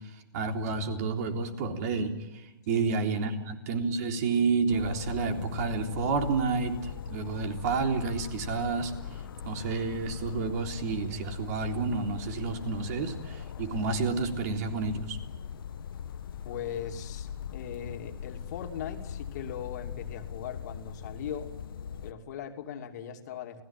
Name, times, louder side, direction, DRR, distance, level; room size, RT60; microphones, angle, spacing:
voice 1, 0.3-2.1 2.7-8.9 9.4-15.2, right 4 dB, 45° right, 5 dB, 3.6 m, -30 dB
sound 1, 4.7-22.1, left 8 dB, 70° left, 1.4 m, -40 dB
voice 2, 16.4-21.5 22.0-23.6, left 8 dB, 50° left, 5 dB, 2.8 m, -39 dB
29.5 x 18.0 x 9.0 m, 1.0 s
hypercardioid pair, 145°, 12 cm